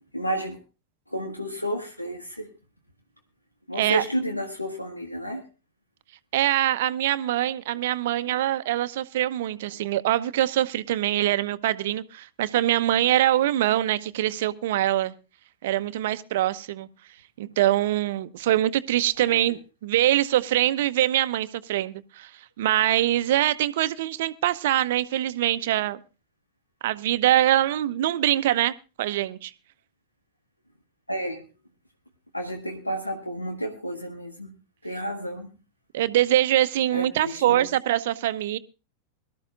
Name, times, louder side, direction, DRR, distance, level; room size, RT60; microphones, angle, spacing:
voice 1, 0.1-0.6 1.1-2.5 3.7-5.5 8.2-8.3 9.7-9.8 19.2-19.6 31.1-31.4 32.3-34.5 34.8-35.5 36.9-37.7, equal, 85° left, 1.7 m, -31 dB
voice 2, 6.3-15.1 15.6-16.9 17.4-22.3 22.6-26.0 26.8-29.5 35.9-38.6, right 13 dB, 55° right, 0.8 m, -24 dB
22.5 x 13.0 x 2.5 m
figure-of-eight pair, 90°, 0 cm